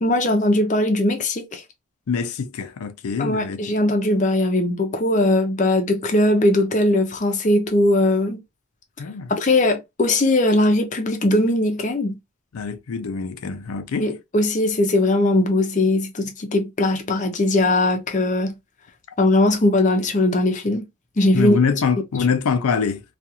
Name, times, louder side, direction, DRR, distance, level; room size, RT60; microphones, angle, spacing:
voice 1, 0.0-1.6 3.2-8.4 9.3-12.1 14.0-18.5 19.2-20.8 21.2-21.6, left 1 dB, 35° left, 0.6 m, -19 dB
voice 2, 2.1-3.6 9.0-9.3 12.5-14.1 21.3-23.0, left 5 dB, 90° left, 0.4 m, -24 dB
2.4 x 2.4 x 2.8 m
head